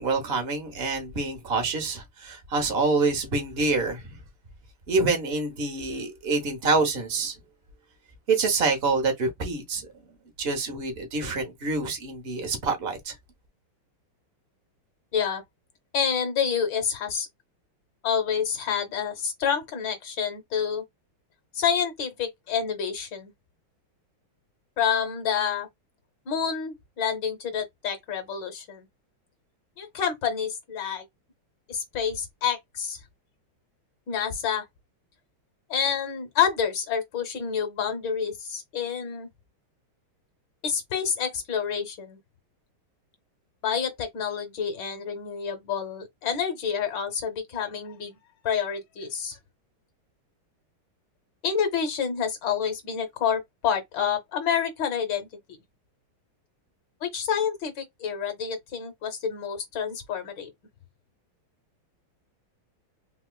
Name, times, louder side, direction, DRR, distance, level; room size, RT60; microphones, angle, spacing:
voice 1, 0.0-4.2 4.9-7.4 8.3-9.9 10.4-13.2, right 3 dB, 45° right, 0.8 m, -26 dB
voice 2, 15.1-15.4 15.9-17.3 18.0-20.8 21.5-23.3 24.8-25.7 26.3-28.9 29.8-31.1 31.7-33.0 34.1-34.6 35.7-39.3 40.6-42.2 43.6-48.2 48.4-49.4 51.4-55.3 57.0-60.5, left 7 dB, 65° left, 1.3 m, -28 dB
3.6 x 2.7 x 2.2 m
omnidirectional pair, 2.3 m